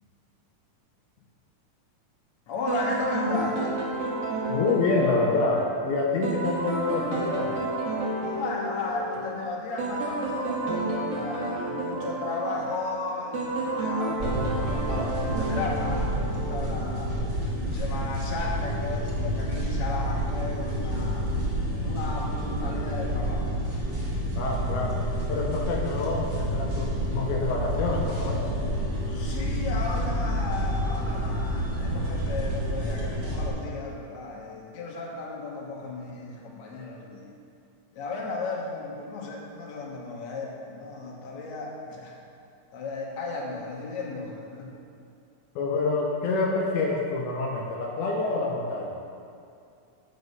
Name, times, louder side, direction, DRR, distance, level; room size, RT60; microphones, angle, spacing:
voice 1, 2.5-3.7 8.3-17.1 17.7-21.3 21.8-24.1 29.1-37.3 37.9-42.2 42.7-44.7, left 3 dB, 65° left, -2 dB, 2.3 m, -35 dB
sound 1, 2.7-16.9, right 2 dB, 60° right, 1.2 m, -31 dB
voice 2, 4.5-7.6 24.3-28.7 45.6-49.0, left 3 dB, 85° left, -1 dB, 2.2 m, -27 dB
sound 2, 14.2-33.5, equal, 35° right, 1.0 m, -29 dB
8.1 x 5.4 x 5.3 m, 2.5 s
omnidirectional pair, 3.5 m